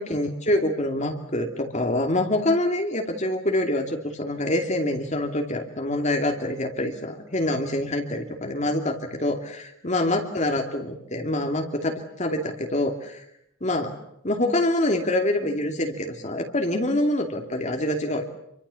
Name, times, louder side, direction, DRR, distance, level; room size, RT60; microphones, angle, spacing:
voice 1, 0.0-13.2 13.6-13.9 14.2-18.2, left 1 dB, 35° left, 3 dB, 2.7 m, -26 dB
27.5 x 24.5 x 7.1 m, 0.78 s
head